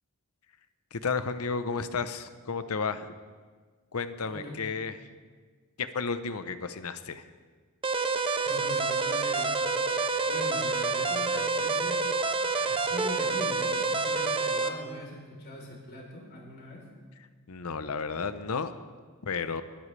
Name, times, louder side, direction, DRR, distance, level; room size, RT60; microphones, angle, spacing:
voice 1, 0.9-3.1 3.9-5.1 5.8-7.2 17.5-18.7 19.2-19.6, left 5 dB, 80° left, 11 dB, 0.8 m, -32 dB
voice 2, 4.2-4.6 8.4-9.5 10.2-12.0 12.6-16.8, left 1 dB, 50° left, -1 dB, 3.8 m, -41 dB
sound 1, 7.8-14.7, right 4 dB, 25° right, 0.6 m, -28 dB
21.0 x 12.5 x 3.3 m, 1.5 s
head